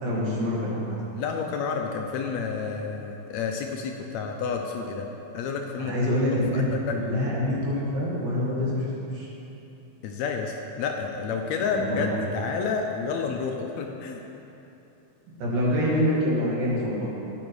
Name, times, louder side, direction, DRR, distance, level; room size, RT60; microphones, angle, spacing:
voice 1, 0.0-0.9 5.8-6.6 7.0-9.3 11.7-12.1 15.4-17.1, left 1 dB, 85° right, -6 dB, 3.5 m, -26 dB
voice 2, 1.2-5.1 5.3-6.1 6.5-7.0 10.0-12.1 12.3-14.2, left 5 dB, 85° left, 2 dB, 1.6 m, -30 dB
12.5 x 8.5 x 3.1 m, 3.0 s
omnidirectional pair, 3.7 m